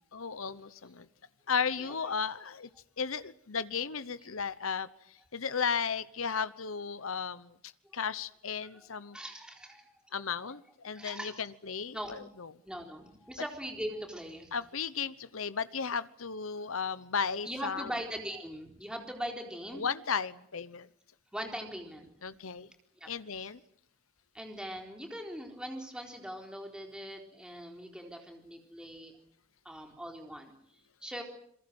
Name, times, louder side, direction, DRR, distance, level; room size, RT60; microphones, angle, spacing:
voice 1, 0.1-1.1 1.5-2.7 3.0-4.9 5.3-7.5 7.9-9.2 10.1-12.5 14.5-17.9 19.7-20.9 22.2-22.7 23.1-23.6, left 6 dB, 70° left, 15 dB, 1.0 m, -34 dB
voice 2, 9.1-9.9 10.3-10.6 10.9-11.5 11.9-12.2 12.6-14.5 14.8-14.9 17.4-19.8 21.3-22.1 23.0-23.1 23.4-23.5 24.3-29.1 29.6-30.5 31.0-31.2, equal, 5° right, 3 dB, 4.0 m, -41 dB
27.0 x 22.5 x 8.0 m, 0.68 s
head